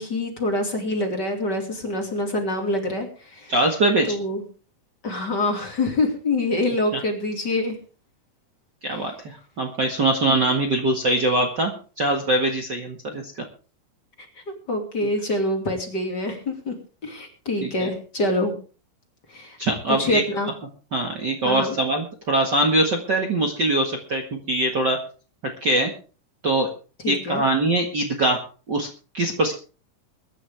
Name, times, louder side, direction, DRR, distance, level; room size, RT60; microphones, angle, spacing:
voice 1, 0.0-3.5 4.1-4.4 5.0-7.8 14.7-16.7 17.0-18.5 19.3-19.6 19.9-20.5 21.4-21.8 27.0-27.4, left 1 dB, 30° left, 2 dB, 3.0 m, -25 dB
voice 2, 3.5-4.2 6.9-7.0 8.8-13.4 17.6-17.9 19.6-20.2 20.9-25.0 25.6-25.9 26.4-26.7 27.1-28.4 28.7-28.9 29.1-29.5, right 1 dB, 40° right, 2 dB, 1.9 m, -22 dB
22.5 x 11.0 x 3.5 m, 0.37 s
omnidirectional pair, 3.8 m